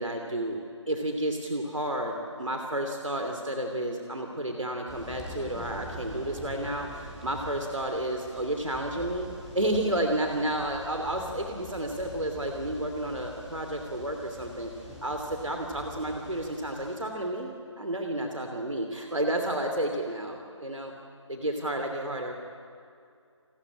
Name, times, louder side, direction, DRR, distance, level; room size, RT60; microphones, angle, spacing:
voice 1, 0.0-9.3 9.5-14.7 15.0-20.9 21.3-22.3, right 1 dB, 85° right, 4 dB, 3.0 m, -31 dB
sound 1, 4.9-16.9, equal, 5° right, 3.5 m, -45 dB
30.0 x 13.5 x 9.8 m, 2.4 s
figure-of-eight pair, 155°, 16 cm